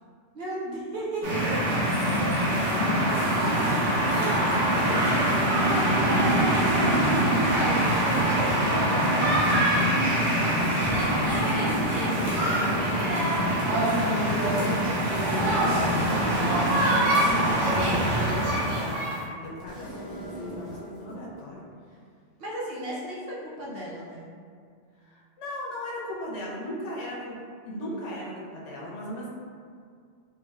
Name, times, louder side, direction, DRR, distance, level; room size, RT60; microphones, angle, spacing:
voice 1, 0.3-1.6 1.9-2.0 5.6-10.5 22.4-24.3, right 1 dB, 60° right, -6 dB, 0.7 m, -35 dB
sound 1, 1.2-19.2, right 1 dB, 90° right, 1.2 m, -24 dB
voice 2, 2.0-5.5 11.1-14.9 15.5-21.6 25.0-27.4 27.6-29.3, equal, 85° left, -5 dB, 1.0 m, -37 dB
sound 2, 12.0-21.5, right 1 dB, 30° left, 0.8 m, -40 dB
3.4 x 2.2 x 2.2 m, 2.1 s
omnidirectional pair, 1.2 m